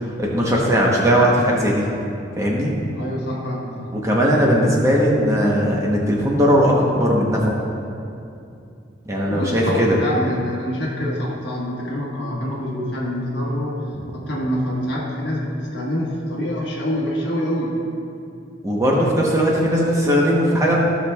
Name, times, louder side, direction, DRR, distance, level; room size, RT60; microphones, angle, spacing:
voice 1, 0.2-1.8 2.4-2.7 3.9-7.6 9.1-10.0 18.6-20.8, equal, 15° right, -3 dB, 0.9 m, -18 dB
voice 2, 2.9-4.0 9.1-13.8 14.1-17.8, equal, 60° left, -3 dB, 1.4 m, -26 dB
14.5 x 5.9 x 2.3 m, 2.6 s
head